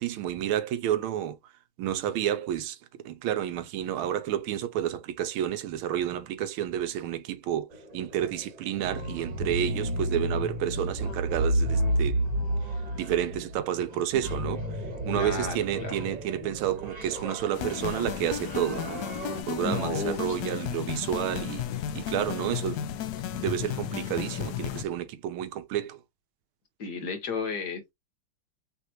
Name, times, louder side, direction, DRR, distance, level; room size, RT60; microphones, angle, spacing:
voice 1, 0.0-1.4 1.8-2.8 3.0-7.7 7.9-12.2 12.9-14.6 15.1-19.0 19.5-21.6 21.9-22.8 23.3-26.0, right 11 dB, 85° right, 1.5 m, -30 dB
sound 1, 7.7-19.4, right 1 dB, 25° right, 1.2 m, -32 dB
voice 2, 15.1-16.0 19.6-20.4 26.8-27.9, left 4 dB, 55° left, 1.7 m, -33 dB
sound 2, 17.5-24.8, left 10 dB, 80° left, 0.9 m, -34 dB
5.7 x 2.9 x 2.9 m
omnidirectional pair, 2.3 m